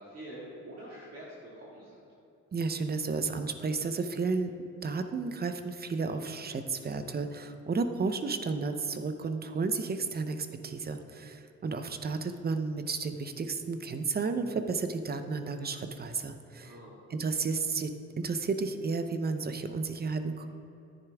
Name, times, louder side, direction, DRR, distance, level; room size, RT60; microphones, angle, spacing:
voice 1, 0.0-2.0 16.6-17.0, right 1 dB, 50° right, -6 dB, 2.1 m, -46 dB
voice 2, 2.5-4.5 4.8-16.8 17.1-20.5, right 4 dB, 30° right, 8 dB, 0.7 m, -32 dB
10.5 x 9.5 x 3.5 m, 2.8 s
cardioid pair, 90°, 30 cm